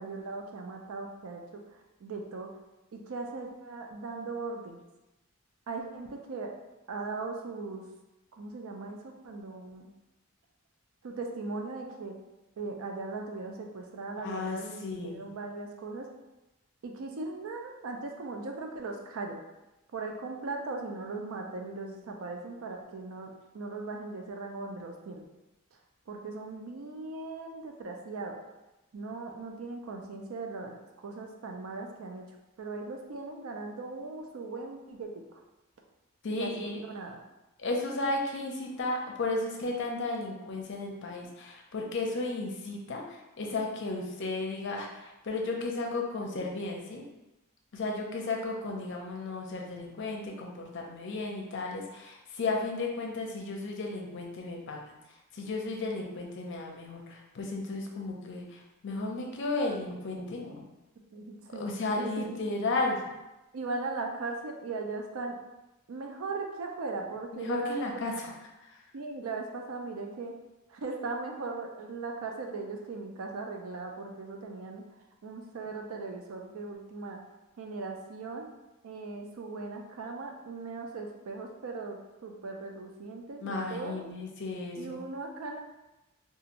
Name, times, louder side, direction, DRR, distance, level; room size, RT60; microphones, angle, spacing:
voice 1, 0.0-2.5 2.9-4.8 5.7-6.5 6.9-7.8 8.3-9.9 11.0-12.2 12.6-16.1 16.8-19.4 19.9-25.2 26.1-28.4 28.9-35.4 36.3-37.2 61.1-61.7 62.0-62.3 63.5-65.4 65.9-67.8 68.9-70.3 70.7-74.8 75.2-77.2 77.6-78.5 78.8-84.1 84.8-85.6, right 3 dB, 75° right, 2 dB, 0.4 m, -38 dB
voice 2, 14.2-15.2 36.2-36.7 37.6-47.0 47.7-54.9 55.3-60.6 61.5-63.0 67.3-68.3 68.7-68.8 83.4-85.0, left 2 dB, 55° left, 1 dB, 0.5 m, -34 dB
2.9 x 2.4 x 2.5 m, 1.0 s
head